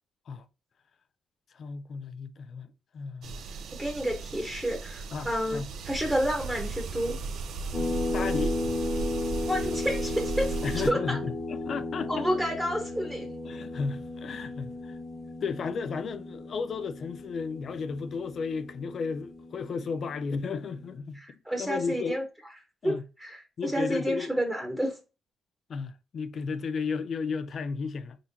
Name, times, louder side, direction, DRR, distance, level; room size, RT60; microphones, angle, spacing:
voice 1, 1.5-3.4 5.1-5.7 8.1-8.6 10.6-12.3 13.4-14.9 15.4-21.2 21.6-22.2 22.8-23.0 23.6-24.3 25.7-28.2, left 5 dB, 55° left, 0.4 m, -34 dB
sound 1, 3.2-10.9, right 4 dB, 70° right, 0.5 m, -36 dB
voice 2, 3.8-7.2 9.5-11.2 12.1-13.3 21.1-22.2 22.8-24.9, equal, 5° right, 1.0 m, -30 dB
sound 2, 7.7-20.8, left 2 dB, 30° left, 1.2 m, -35 dB
4.4 x 3.7 x 2.7 m
cardioid pair, 90°, 0 cm